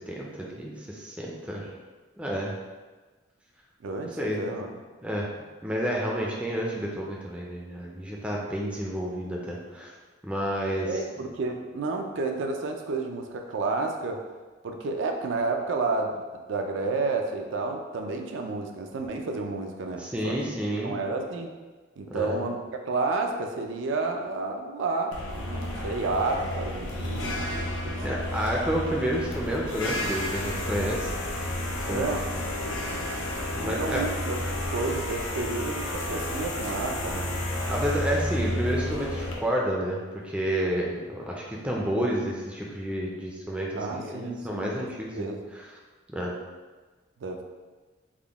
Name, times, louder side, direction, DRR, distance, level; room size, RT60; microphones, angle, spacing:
voice 1, 0.0-1.7 2.2-2.5 4.2-4.6 5.0-5.3 5.6-9.9 10.2-11.0 20.0-21.0 22.1-22.4 28.0-31.1 31.7-32.1 33.5-34.0 37.7-45.3 46.1-46.3, equal, 5° right, -3 dB, 0.3 m, -30 dB
voice 2, 3.8-4.7 10.9-14.2 14.6-20.4 20.8-21.6 22.0-28.0 31.8-32.2 33.5-34.4 34.7-37.5 38.0-38.1 40.7-40.8 43.8-44.9 45.2-45.5 47.2-47.4, right 3 dB, 75° right, 3 dB, 0.4 m, -31 dB
sound 1, 25.1-39.3, left 1 dB, 85° left, 0.6 m, -31 dB
3.6 x 2.1 x 3.4 m, 1.3 s
head